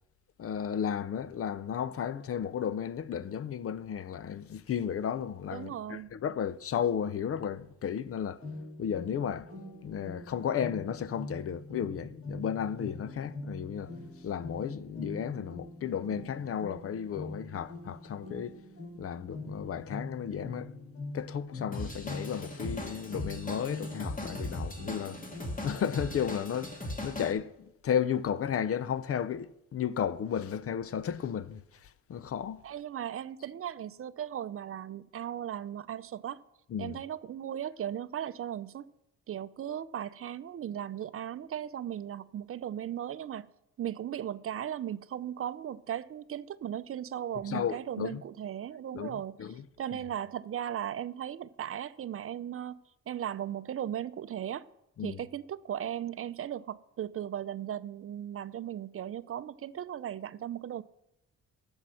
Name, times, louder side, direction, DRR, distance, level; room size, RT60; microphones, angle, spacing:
voice 1, 0.4-8.4 8.8-9.5 9.8-13.9 14.2-18.5 19.0-20.7 21.1-25.2 25.6-32.6 36.7-37.0 47.5-48.2 48.9-49.6 55.0-55.2, left 8 dB, 50° left, 0.6 m, -34 dB
voice 2, 5.5-6.1 32.6-36.4 36.8-38.9 39.3-43.5 43.8-49.4 49.8-52.8 53.1-54.7 55.0-60.8, right 10 dB, 45° right, 0.6 m, -37 dB
sound 1, 8.4-25.8, left 2 dB, 65° left, 5.1 m, -43 dB
Drum kit / Drum, 21.7-27.3, left 1 dB, 25° left, 2.1 m, -39 dB
11.5 x 7.2 x 6.3 m
cardioid pair, 90°, 30 cm